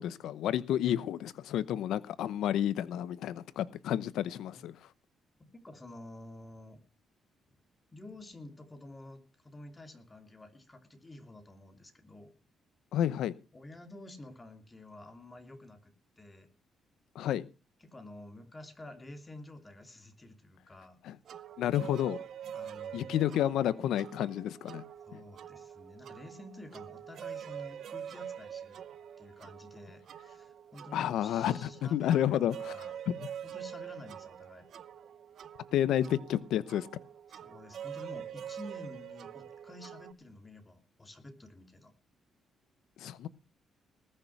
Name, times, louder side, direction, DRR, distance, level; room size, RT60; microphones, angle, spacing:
voice 1, 0.0-4.8 12.9-13.3 17.1-17.5 21.0-21.2 21.6-22.2 22.9-24.8 25.1-25.2 30.9-32.7 33.1-33.2 35.7-36.9 43.0-43.3, left 11 dB, 80° left, 0.8 m, -30 dB
voice 2, 4.2-4.6 5.4-6.8 7.9-12.3 13.5-16.5 17.8-21.0 22.5-23.6 25.1-28.8 29.2-32.9 33.4-34.7 37.3-41.9, left 1 dB, 20° left, 2.8 m, -50 dB
sound 1, 21.3-40.1, right 9 dB, 65° right, 0.8 m, -45 dB
20.0 x 6.7 x 5.9 m
cardioid pair, 90°, 0 cm